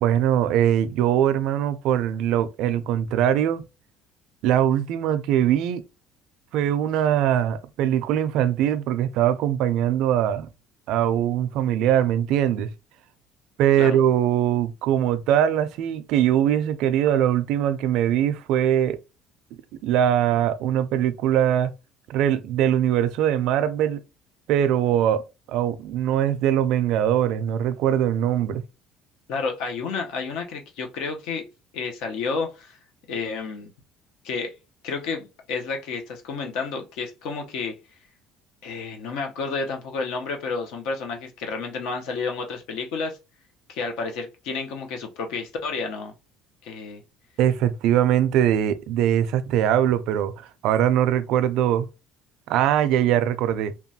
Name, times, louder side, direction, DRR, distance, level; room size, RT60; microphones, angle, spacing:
voice 1, 0.0-3.6 4.4-5.8 6.5-10.5 10.9-12.7 13.6-19.0 19.8-21.7 22.1-24.0 24.5-25.2 25.5-28.6 47.4-50.3 50.6-51.9 52.5-53.7, right 10 dB, 65° right, 0.3 m, -21 dB
voice 2, 29.3-31.4 31.7-32.8 33.1-33.7 34.2-34.5 34.8-37.7 38.6-43.2 43.7-46.1 46.6-47.0, left 4 dB, 75° left, 0.7 m, -30 dB
2.9 x 2.2 x 2.7 m
cardioid pair, 155°, 0 cm